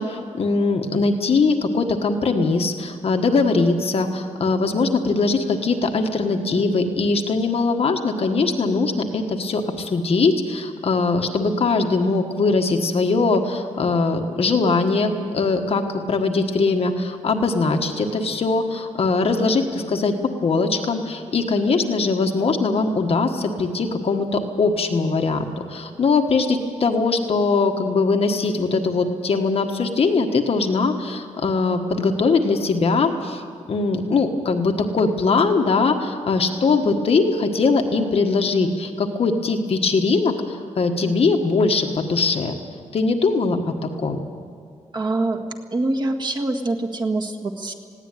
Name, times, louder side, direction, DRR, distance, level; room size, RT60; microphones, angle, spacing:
voice 1, 0.0-20.1 20.4-33.4 33.7-42.5 42.9-44.2, left 3 dB, 50° left, 4 dB, 1.5 m, -21 dB
voice 2, 44.9-45.4 45.7-47.7, right 2 dB, 35° right, 2 dB, 1.7 m, -24 dB
19.5 x 16.5 x 9.2 m, 2.1 s
wide cardioid pair, 170°, 13 cm